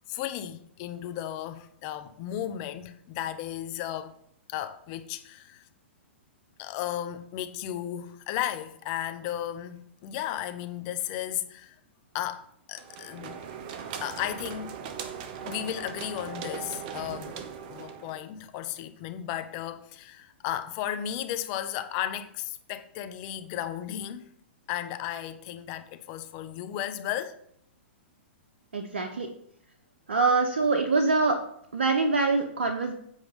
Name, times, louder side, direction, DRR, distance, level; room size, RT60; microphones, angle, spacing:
voice 1, 0.1-4.2 4.5-5.6 6.6-11.7 12.1-13.4 14.0-14.7 15.4-24.3 24.7-27.4, left 11 dB, 40° left, 0.9 m, -34 dB
sound 1, 12.8-18.2, right 7 dB, 45° right, 1.0 m, -39 dB
voice 2, 28.7-29.3 30.1-31.4 31.7-32.9, right 3 dB, 80° right, 1.0 m, -24 dB
8.2 x 5.1 x 5.4 m
hypercardioid pair, 120°, 6 cm